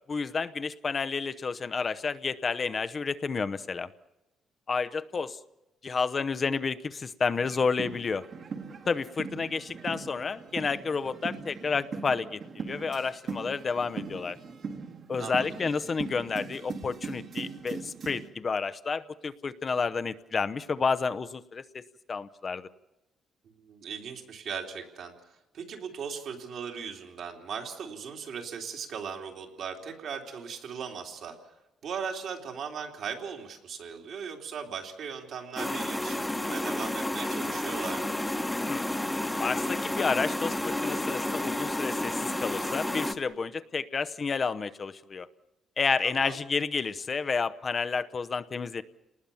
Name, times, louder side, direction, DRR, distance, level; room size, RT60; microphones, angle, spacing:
voice 1, 0.1-3.9 4.7-5.4 5.8-8.2 8.9-14.4 15.1-21.8 22.1-22.7 38.7-38.9 39.3-45.3 45.8-48.8, left 5 dB, 35° left, 12 dB, 0.8 m, -30 dB
sound 1, 7.3-18.3, right 5 dB, 50° right, 1.9 m, -40 dB
voice 2, 23.6-25.1 25.5-31.5 31.8-38.1 46.0-46.4, right 6 dB, 65° right, 2 dB, 3.4 m, -38 dB
sound 2, 35.6-43.1, left 1 dB, 10° left, 1.2 m, -31 dB
29.5 x 19.5 x 7.1 m, 0.92 s
cardioid pair, 115°, 0 cm